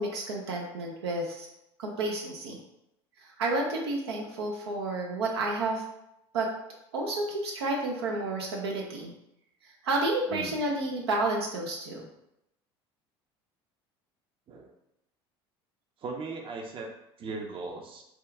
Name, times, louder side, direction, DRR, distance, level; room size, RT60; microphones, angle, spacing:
voice 1, 0.0-1.5 1.8-2.6 3.2-5.8 6.3-6.5 6.9-9.1 9.8-12.1, right 2 dB, 85° right, 0 dB, 0.5 m, -30 dB
voice 2, 16.0-16.9 17.2-18.0, right 3 dB, 40° right, 2 dB, 0.6 m, -38 dB
2.8 x 2.3 x 3.4 m, 0.82 s
hypercardioid pair, 75°, 13 cm